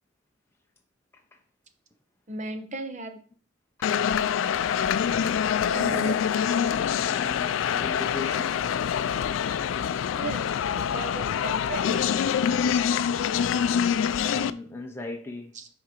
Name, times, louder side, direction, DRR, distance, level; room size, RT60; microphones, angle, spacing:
voice 1, 2.3-3.2 5.6-6.2 10.2-12.2 15.5-15.7, right 3 dB, 40° right, 0.8 m, -36 dB
sound 1, 3.8-14.5, left 8 dB, 80° left, 0.3 m, -25 dB
voice 2, 5.7-6.2 7.1-8.7 14.3-15.6, left 2 dB, 10° left, 0.5 m, -38 dB
10.5 x 3.8 x 2.9 m
head